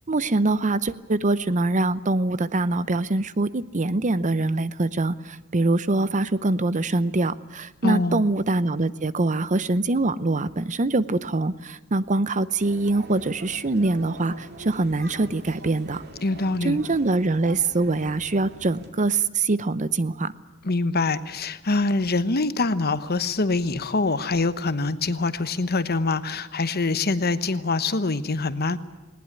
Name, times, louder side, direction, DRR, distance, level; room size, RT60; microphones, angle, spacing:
voice 1, 0.1-16.0 16.6-20.3, right 2 dB, 35° right, 16 dB, 0.8 m, -24 dB
voice 2, 7.8-8.2 16.2-16.8 20.6-28.8, left 3 dB, 50° left, 13 dB, 1.1 m, -24 dB
sound 1, 12.6-18.9, right 2 dB, 50° right, 2.9 m, -43 dB
20.0 x 19.0 x 9.8 m, 1.2 s
head